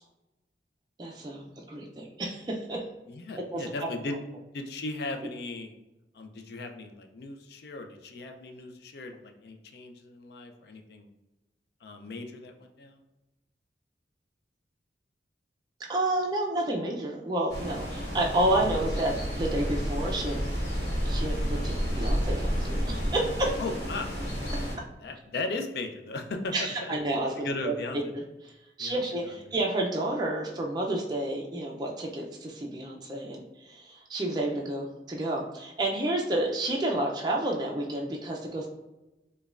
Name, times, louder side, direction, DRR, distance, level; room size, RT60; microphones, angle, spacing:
voice 1, 1.0-2.8 3.5-3.6 15.9-20.4 21.0-23.6 26.5-28.2 28.8-38.7, right 1 dB, 25° right, -1 dB, 0.4 m, -30 dB
voice 2, 3.1-4.2 4.5-5.7 6.1-11.1 11.8-13.0 23.6-24.1 24.8-26.9 27.4-28.1 28.8-29.5, left 2 dB, 65° left, 5 dB, 0.4 m, -37 dB
sound 1, 17.5-24.7, equal, 50° left, 1.4 m, -30 dB
5.0 x 2.2 x 2.4 m, 1.0 s
head